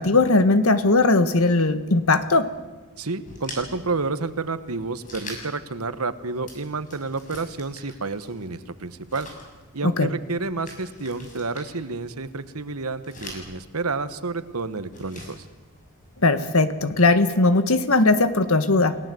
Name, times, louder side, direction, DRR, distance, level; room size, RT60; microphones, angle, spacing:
voice 1, 0.0-2.5 9.8-10.1 16.2-19.0, left 2 dB, 70° left, 11 dB, 1.5 m, -19 dB
voice 2, 3.0-9.3 9.7-15.4, right 3 dB, 85° right, 12 dB, 1.3 m, -30 dB
sound 1, 3.2-16.6, left 1 dB, 35° left, 6.8 m, -45 dB
29.0 x 18.0 x 7.8 m, 1.2 s
head